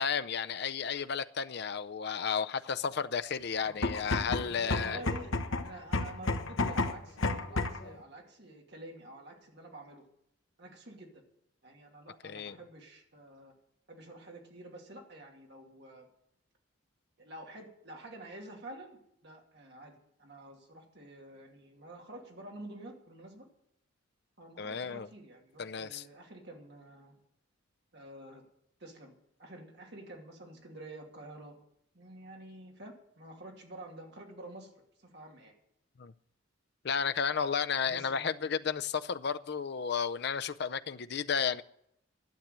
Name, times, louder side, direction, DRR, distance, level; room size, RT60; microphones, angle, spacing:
voice 1, 0.0-5.0 12.2-12.6 24.6-25.1 25.6-26.0 36.0-36.1 36.8-41.6, left 6 dB, 50° left, 0.5 m, -33 dB
sound 1, 3.7-7.9, left 2 dB, 75° left, 1.0 m, -32 dB
voice 2, 4.6-10.0 10.6-11.2 11.6-13.5 13.9-16.1 17.2-23.5 24.4-27.1 27.9-28.4 28.8-29.1 29.4-31.6 31.9-34.7 35.0-35.5 37.8-38.5, right 1 dB, 55° right, 2.6 m, -49 dB
12.0 x 7.5 x 9.2 m
head